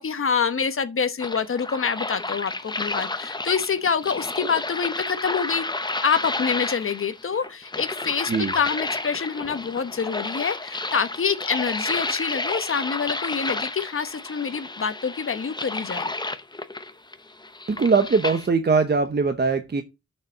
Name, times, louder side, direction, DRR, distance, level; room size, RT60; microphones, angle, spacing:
voice 1, 0.0-5.6 6.0-16.1, left 6 dB, 45° left, 1.1 m, -26 dB
sound 1, 1.2-18.5, left 2 dB, 15° left, 0.8 m, -31 dB
voice 2, 17.7-19.8, right 4 dB, 35° right, 0.9 m, -21 dB
7.2 x 6.8 x 5.4 m
wide cardioid pair, 135°, 29 cm